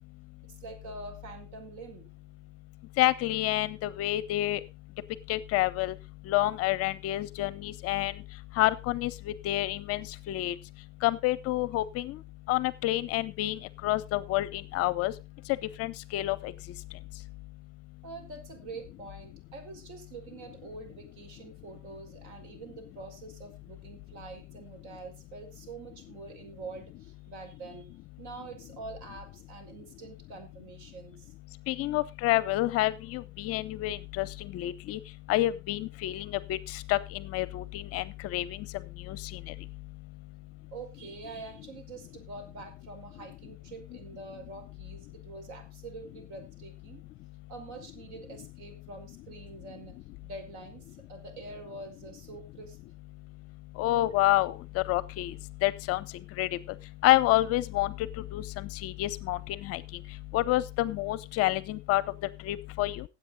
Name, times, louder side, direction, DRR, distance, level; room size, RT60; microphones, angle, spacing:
voice 1, 0.5-2.1 18.0-27.9 28.2-31.3 40.7-47.0 47.5-50.0 50.2-52.8, right 3 dB, 55° right, 6 dB, 5.2 m, -45 dB
voice 2, 3.0-4.6 5.3-5.9 6.3-8.1 8.6-10.5 11.0-12.2 12.5-15.1 15.8-16.5 31.7-35.0 35.3-38.6 39.1-39.2 53.8-55.3 55.6-56.0 56.4-56.5 57.0-57.9 58.3-59.8 60.3-62.0 62.4-63.0, left 16 dB, 40° left, 20 dB, 0.7 m, -28 dB
16.5 x 8.1 x 3.9 m, 0.26 s
hypercardioid pair, 85°, 36 cm